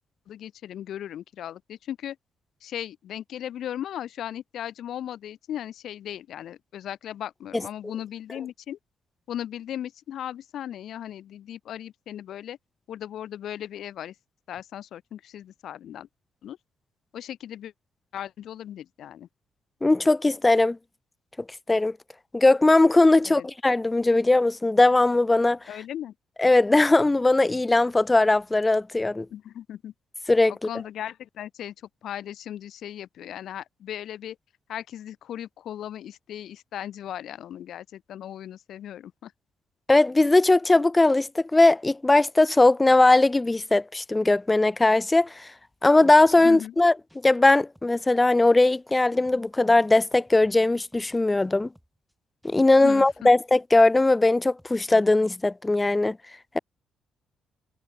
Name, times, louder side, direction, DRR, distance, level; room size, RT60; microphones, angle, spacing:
voice 1, 0.3-2.2 2.6-8.8 9.3-12.6 12.9-14.1 14.5-16.1 16.4-16.6 17.1-17.7 18.1-19.3 23.2-23.5 25.7-26.1 29.3-29.9 30.5-31.7 32.0-34.4 34.7-39.3 46.4-46.7 52.8-53.3, left 11 dB, 70° left, 0.8 m, -37 dB
voice 2, 19.8-20.8 21.7-21.9 22.3-25.6 26.4-29.3 30.3-30.7 39.9-45.5 45.8-46.9 47.2-51.7 52.4-56.2, left 2 dB, 15° left, 0.6 m, -19 dB
sound 1, 46.3-46.8 47.1-47.5 47.8-48.2 48.4-48.8 49.1-49.5 49.8-52.1 52.4-52.8 53.1-53.5 53.8-54.1 54.4-54.7, equal, ahead, 7.4 m, -60 dB
cardioid pair, 90°, 0 cm